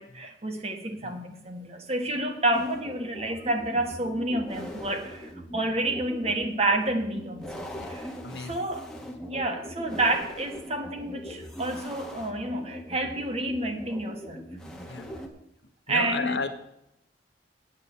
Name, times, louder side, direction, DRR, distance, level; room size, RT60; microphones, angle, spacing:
voice 1, 0.0-8.1 8.4-8.9 9.3-14.4 15.9-16.4, right 2 dB, 35° right, 5 dB, 1.4 m, -29 dB
sound 1, 2.5-15.3, equal, 5° left, 1.2 m, -41 dB
voice 2, 8.2-8.7 14.9-15.1 15.9-16.5, left 4 dB, 70° left, 8 dB, 1.1 m, -33 dB
8.1 x 7.3 x 8.3 m, 0.83 s
head